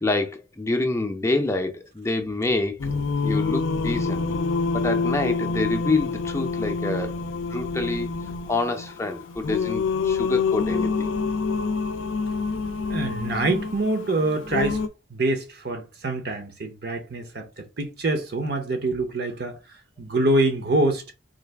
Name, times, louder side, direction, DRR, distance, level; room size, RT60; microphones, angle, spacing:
voice 1, 0.0-2.9 3.2-4.3 4.7-8.1 8.5-11.1 13.3-13.4, left 2 dB, 15° left, 0.5 m, -27 dB
Singing, 2.8-14.9, left 4 dB, 75° left, 0.4 m, -27 dB
voice 2, 12.9-14.8 15.1-19.6 20.0-21.0, right 2 dB, 55° right, 0.7 m, -25 dB
3.9 x 2.4 x 3.3 m
head